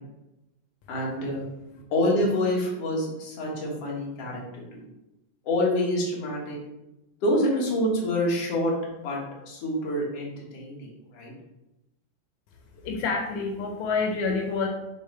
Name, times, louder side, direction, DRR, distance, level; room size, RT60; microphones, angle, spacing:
voice 1, 0.9-1.5 1.9-4.8 5.4-6.6 7.2-9.2 9.5-11.3, left 1 dB, 60° left, -3 dB, 2.4 m, -27 dB
voice 2, 12.8-14.7, left 4 dB, 85° left, 2 dB, 2.2 m, -27 dB
8.6 x 3.6 x 3.3 m, 0.96 s
omnidirectional pair, 3.3 m